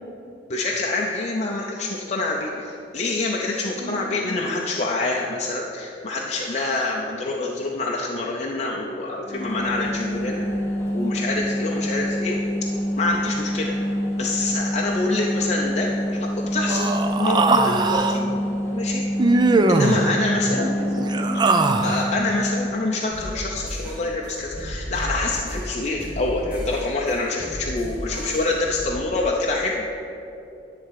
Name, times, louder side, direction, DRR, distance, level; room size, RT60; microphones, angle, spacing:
voice 1, 0.5-10.4 10.9-12.4 13.0-13.7 14.2-18.0 18.7-19.0 19.7-20.7 21.8-29.9, left 2 dB, 40° left, -1 dB, 0.6 m, -26 dB
voice 2, 3.8-4.3 10.0-10.5 18.1-18.4 20.5-21.9, equal, 60° left, 1 dB, 1.5 m, -34 dB
sound 1, 9.2-22.8, equal, 15° left, 1.5 m, -26 dB
Human voice, 16.7-18.2 19.2-20.0 20.9-22.1, right 3 dB, 25° right, 0.4 m, -20 dB
sound 2, 23.1-28.8, equal, 10° right, 1.4 m, -34 dB
11.0 x 3.7 x 7.5 m, 2.8 s
head